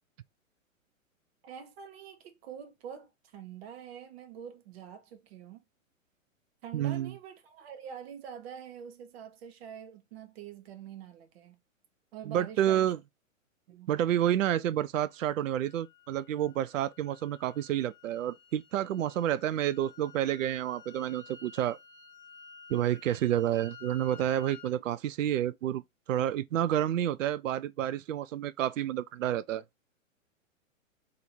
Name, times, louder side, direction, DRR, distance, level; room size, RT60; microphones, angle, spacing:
voice 1, 1.4-5.6 6.6-11.6 12.1-12.9 13.7-13.9, right 8 dB, 50° right, 0.9 m, -45 dB
voice 2, 6.7-7.1 12.2-13.0 13.9-21.8 22.7-25.8 26.1-29.6, right 11 dB, 70° right, 0.5 m, -29 dB
sound 1, 15.1-24.7, left 5 dB, 40° left, 1.2 m, -54 dB
2.9 x 2.7 x 4.2 m
figure-of-eight pair, 115°, 41 cm